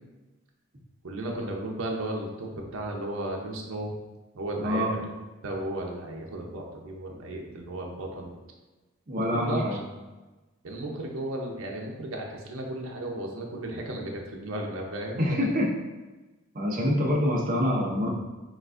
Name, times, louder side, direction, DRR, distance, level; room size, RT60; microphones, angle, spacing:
voice 1, 1.0-3.9 4.3-5.0 5.4-8.3 9.2-9.8 10.6-15.5, right 1 dB, 75° right, 0 dB, 0.7 m, -34 dB
voice 2, 9.1-9.8 15.2-15.7 16.5-18.1, left 1 dB, 40° right, -2 dB, 0.7 m, -25 dB
6.0 x 2.4 x 2.5 m, 1.2 s
head